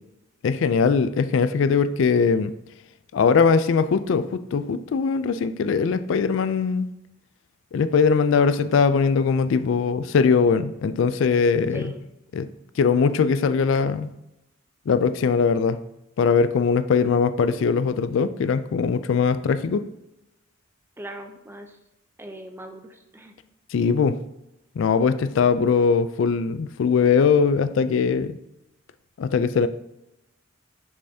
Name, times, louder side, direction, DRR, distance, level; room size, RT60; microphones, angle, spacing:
voice 1, 0.4-2.5 3.1-6.9 7.7-11.9 12.3-12.5 12.8-14.1 14.9-15.8 16.2-19.8 23.7-24.2 24.8-28.4 29.2-29.7, left 5 dB, 65° left, 12 dB, 0.3 m, -21 dB
voice 2, 11.7-12.0 21.0-21.8 22.2-23.3, right 1 dB, 10° right, 5 dB, 0.5 m, -40 dB
6.8 x 5.4 x 2.7 m, 0.88 s
head